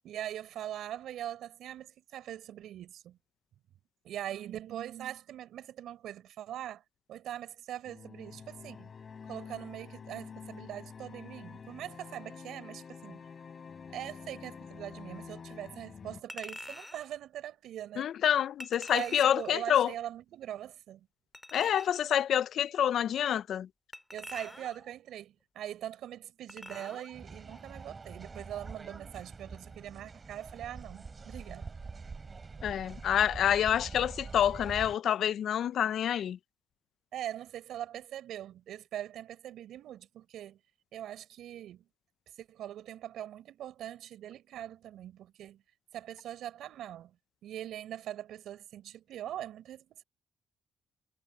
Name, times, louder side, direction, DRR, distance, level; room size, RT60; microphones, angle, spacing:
voice 1, 0.0-3.2 4.0-6.8 7.1-8.9 9.3-13.2 13.9-18.1 18.9-21.1 24.1-31.7 37.1-40.6 40.9-41.9 42.4-45.6 45.9-47.2 47.4-50.0, right 11 dB, 75° right, 6.4 m, -42 dB
sound 1, 7.8-16.2, left 6 dB, 45° left, 4.5 m, -48 dB
Chink clink, 16.3-17.1 18.6-19.5 21.3-22.1 23.9-24.9 26.5-27.1 27.5-27.6, left 1 dB, 10° left, 3.6 m, -46 dB
voice 2, 18.0-19.9 21.5-23.7 32.6-36.4, left 10 dB, 70° left, 0.5 m, -27 dB
sound 2, 27.1-35.0, right 4 dB, 30° right, 4.1 m, -45 dB
cardioid pair, 90°, 0 cm